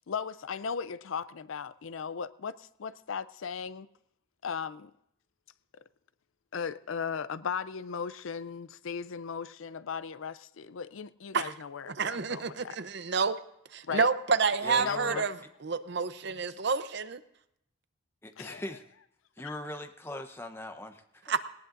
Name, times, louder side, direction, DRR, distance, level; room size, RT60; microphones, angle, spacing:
voice 1, 0.1-3.9 4.4-4.9 5.7-5.8 6.5-12.8 13.8-14.1 14.8-15.2 18.4-18.6 19.4-19.5, left 6 dB, 75° left, 0.5 m, -37 dB
voice 2, 11.9-13.3 13.7-15.3 15.6-17.2 21.3-21.4, right 5 dB, 55° right, 0.7 m, -29 dB
voice 3, 14.6-15.2 18.2-18.8 19.4-21.2, left 1 dB, 10° left, 0.9 m, -40 dB
19.5 x 18.5 x 2.6 m
head